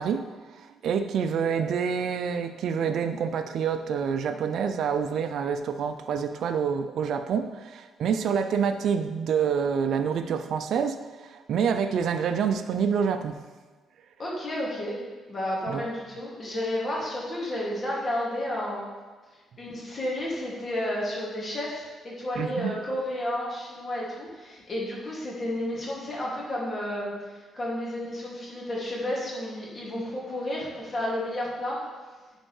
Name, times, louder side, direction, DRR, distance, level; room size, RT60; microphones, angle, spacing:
voice 1, 0.0-13.4 15.7-15.8 22.4-22.7, right 7 dB, 70° right, 8 dB, 0.4 m, -27 dB
voice 2, 14.2-15.0 15.3-18.9 19.6-27.1 27.5-31.8, left 1 dB, 40° left, -5 dB, 2.3 m, -31 dB
10.5 x 4.5 x 3.3 m, 1.3 s
cardioid pair, 90°, 0 cm